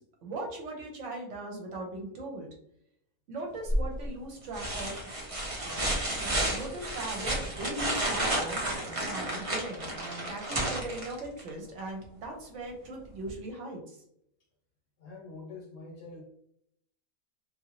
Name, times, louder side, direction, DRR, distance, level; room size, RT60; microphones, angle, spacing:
voice 1, 0.0-2.5 3.3-5.0 5.6-14.0, right 2 dB, 60° right, 0 dB, 1.1 m, -39 dB
sound 1, 3.7-4.1 4.5-11.5 13.3-13.4, right 1 dB, 35° right, 0.5 m, -31 dB
voice 2, 15.0-16.2, left 3 dB, 65° left, -1 dB, 1.1 m, -45 dB
2.7 x 2.6 x 2.9 m, 0.72 s
omnidirectional pair, 1.5 m